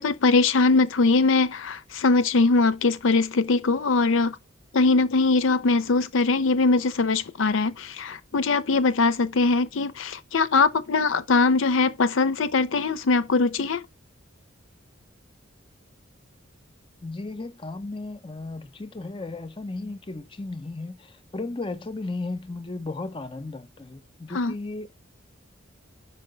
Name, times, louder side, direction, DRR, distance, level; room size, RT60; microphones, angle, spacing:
voice 1, 0.0-4.4 4.7-13.8 24.3-24.5, left 3 dB, 70° left, 0.5 m, -21 dB
voice 2, 17.0-24.9, left 2 dB, 25° left, 0.5 m, -35 dB
5.5 x 4.5 x 5.0 m
head